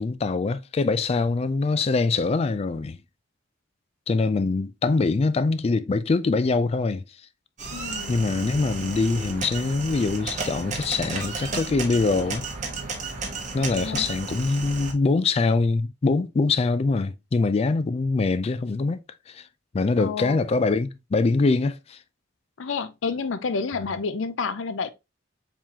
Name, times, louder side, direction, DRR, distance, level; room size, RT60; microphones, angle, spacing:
voice 1, 0.0-3.0 4.1-7.0 8.1-12.4 13.5-19.4 19.7-22.0, left 3 dB, 30° left, 0.3 m, -23 dB
sound 1, 7.6-14.9, right 4 dB, 40° right, 1.1 m, -33 dB
voice 2, 7.7-8.2 13.7-14.1 20.0-20.4 22.6-24.9, left 4 dB, 85° left, 0.5 m, -29 dB
4.6 x 3.8 x 2.7 m
head